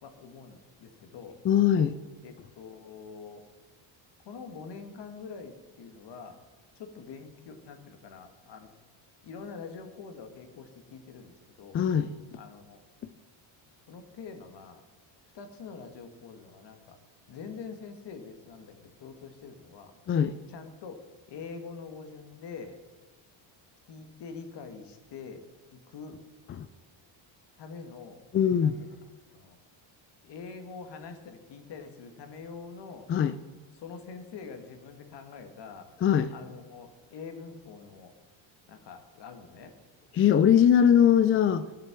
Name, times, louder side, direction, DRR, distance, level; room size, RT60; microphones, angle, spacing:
voice 1, 0.0-1.4 2.2-3.5 4.3-6.4 6.8-8.7 9.2-11.8 12.3-12.8 13.9-14.8 15.3-17.0 17.3-19.9 20.5-22.8 23.9-25.5 25.7-26.2 27.6-28.2 28.6-29.6 30.2-33.1 33.7-35.9 36.3-38.1 38.7-39.7, left 5 dB, 60° left, 7 dB, 1.7 m, -45 dB
voice 2, 1.4-2.0 11.7-12.1 20.1-20.3 26.6-26.7 28.3-28.8 33.1-33.3 36.0-36.3 40.1-41.7, left 9 dB, 30° left, 12 dB, 0.3 m, -21 dB
14.0 x 7.6 x 5.9 m, 1.3 s
cardioid pair, 125°, 48 cm